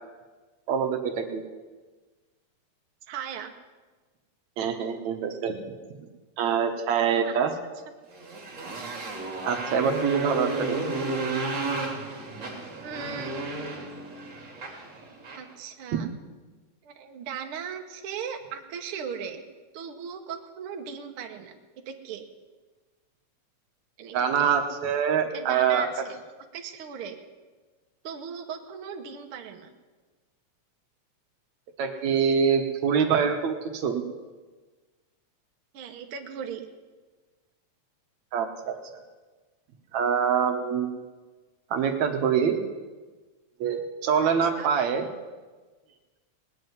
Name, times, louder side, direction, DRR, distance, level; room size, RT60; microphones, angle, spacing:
voice 1, 0.7-1.4 4.6-5.6 6.0-6.1 6.4-7.5 9.5-10.8 15.9-16.0 24.1-25.9 31.8-34.0 38.3-38.7 39.9-40.9 41.7-42.6 43.6-45.0, right 7 dB, 75° right, 5 dB, 2.4 m, -25 dB
voice 2, 3.1-3.5 7.2-7.4 12.8-13.7 15.3-16.1 16.8-19.4 19.7-21.6 21.8-22.2 24.0-24.5 25.3-26.2 26.5-27.2 28.0-29.7 35.7-36.7 44.2-44.7, right 7 dB, 60° right, 4 dB, 1.7 m, -38 dB
Motorcycle, 8.1-15.5, right 3 dB, 40° right, 3.3 m, -33 dB
19.0 x 7.6 x 9.5 m, 1.3 s
omnidirectional pair, 3.4 m